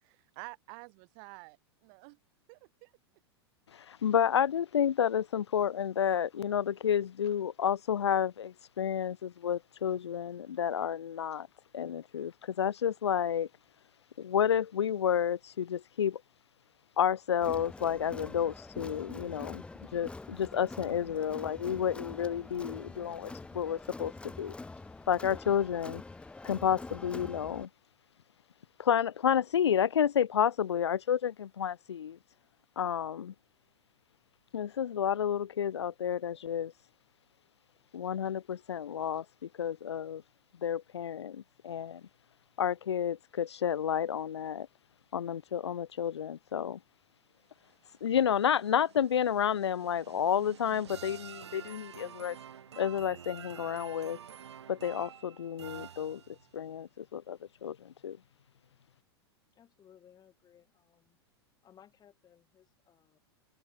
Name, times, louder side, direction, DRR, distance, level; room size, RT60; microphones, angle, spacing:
voice 1, 0.0-2.2 2.5-2.9, right 35 dB, 50° right, 2.5 m, -49 dB
voice 2, 3.7-11.5 11.7-13.5 14.2-16.2 17.0-19.6 19.9-24.1 24.4-24.5 25.1-26.0 26.4-27.7 28.8-32.2 32.8-33.3 34.5-36.7 37.9-40.2 40.6-42.0 42.6-44.7 45.1-46.8 48.0-52.4 52.8-54.2 54.7-56.2 56.5-58.2, left 9 dB, 80° left, 0.8 m, -30 dB
Crowd, 17.4-27.7, left 3 dB, 10° left, 0.7 m, -45 dB
sound 1, 47.7-56.6, right 8 dB, 80° right, 3.9 m, -49 dB
voice 3, 59.5-61.2 61.6-63.2, left 9 dB, 30° left, 6.4 m, -61 dB
hypercardioid pair, 100°, 14 cm